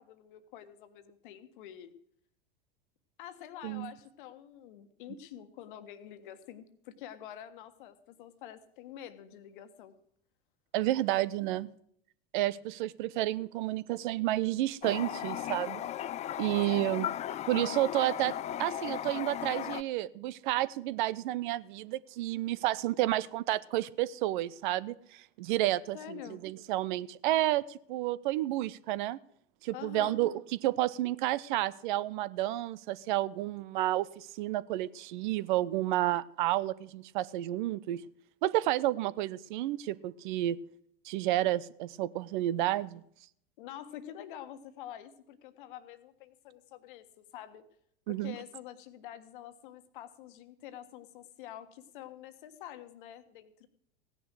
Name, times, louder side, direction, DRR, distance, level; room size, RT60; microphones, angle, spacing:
voice 1, 0.0-1.9 3.2-9.9 16.7-16.9 25.9-26.4 29.7-30.2 43.6-47.6 48.1-53.7, left 11 dB, 60° left, 10 dB, 1.5 m, -47 dB
voice 2, 10.7-11.7 12.3-15.8 16.4-17.1 17.5-18.3 18.6-26.2 26.4-29.2 29.6-30.3 30.6-38.0 38.4-40.6 41.0-43.0 48.1-48.3, right 15 dB, 55° right, 19 dB, 0.8 m, -31 dB
Toilet flush, 14.8-19.8, left 11 dB, 25° left, 0.5 m, -36 dB
16.5 x 10.0 x 6.4 m, 0.69 s
figure-of-eight pair, 80°, 29 cm